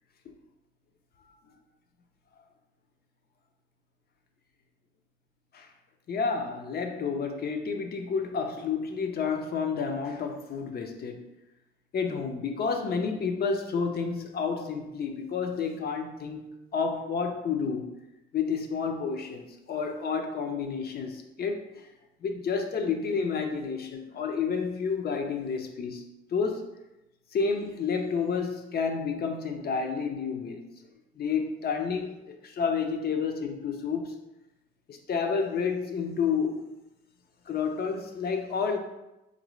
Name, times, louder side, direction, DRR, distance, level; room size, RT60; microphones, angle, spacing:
voice 1, 6.1-11.2 11.9-17.9 18.3-21.9 22.2-26.0 26.3-26.7 27.3-30.6 31.2-34.1 34.9-36.7 37.5-38.8, left 5 dB, 50° left, 4 dB, 0.6 m, -30 dB
4.0 x 2.6 x 3.0 m, 0.95 s
cardioid pair, 90°, 20 cm